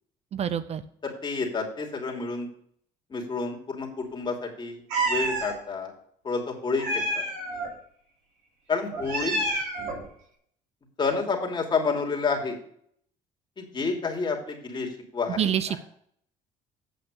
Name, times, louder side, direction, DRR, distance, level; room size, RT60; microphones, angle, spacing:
voice 1, 0.3-0.8 15.4-15.8, right 9 dB, 45° right, 14 dB, 0.5 m, -26 dB
voice 2, 1.0-2.5 3.1-5.9 6.2-7.2 8.7-9.4 11.0-12.6 13.6-15.8, left 4 dB, 30° left, 0 dB, 2.7 m, -29 dB
Meow, 4.9-5.5 6.8-7.7 8.9-10.0, right 2 dB, 85° right, 3.2 m, -28 dB
8.6 x 5.8 x 6.4 m, 0.66 s
cardioid pair, 90°, 15 cm